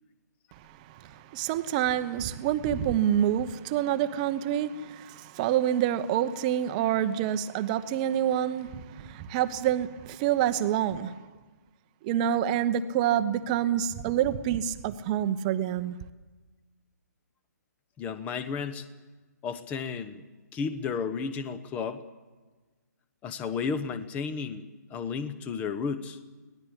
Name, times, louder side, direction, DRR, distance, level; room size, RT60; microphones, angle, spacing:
voice 1, 0.9-11.2 12.0-16.0, right 10 dB, 25° right, 1.0 m, -27 dB
voice 2, 18.0-18.9 19.4-20.2 20.5-22.0 23.2-26.2, left 5 dB, 15° left, 1.1 m, -33 dB
24.0 x 18.5 x 8.3 m
figure-of-eight pair, 135°, 10 cm